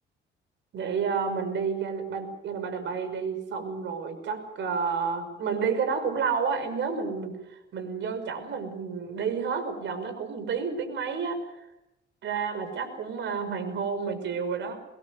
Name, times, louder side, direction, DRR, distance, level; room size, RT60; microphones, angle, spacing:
voice 1, 0.7-11.4 12.2-14.8, right 5 dB, 70° right, 8 dB, 5.9 m, -30 dB
24.5 x 21.5 x 6.8 m, 0.89 s
cardioid pair, 90°, 20 cm